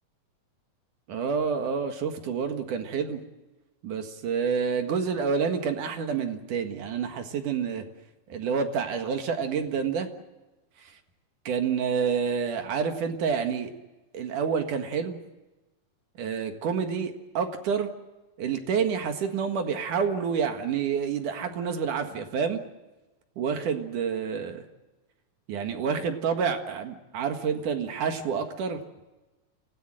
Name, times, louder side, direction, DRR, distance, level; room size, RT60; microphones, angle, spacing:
voice 1, 1.1-3.2 3.8-7.8 8.3-10.1 11.4-13.7 14.1-15.2 16.2-17.9 18.4-22.6 23.4-24.6 25.5-28.8, right 6 dB, 65° right, 6 dB, 3.1 m, -28 dB
28.5 x 17.5 x 7.7 m, 1.1 s
omnidirectional pair, 4.1 m